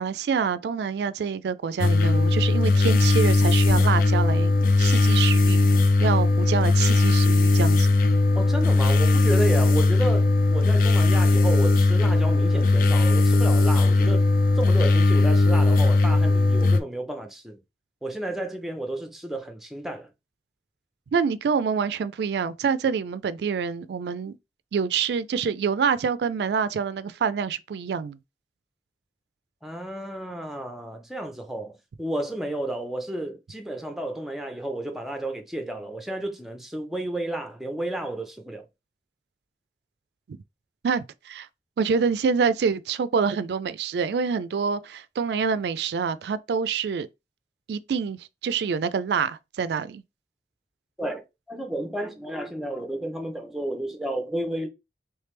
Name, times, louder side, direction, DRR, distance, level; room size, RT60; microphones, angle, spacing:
voice 1, 0.0-5.7 6.0-7.9 21.1-24.4 24.7-28.2 40.3-40.4 40.8-41.5 41.8-47.1 47.7-50.0, right 6 dB, 70° right, 0.3 m, -26 dB
sound 1, 1.8-16.8, left 3 dB, 50° left, 0.4 m, -19 dB
voice 2, 8.3-14.2 14.6-17.6 18.0-20.1 29.6-38.6 51.0-54.7, right 1 dB, ahead, 0.6 m, -32 dB
3.3 x 3.2 x 3.2 m
head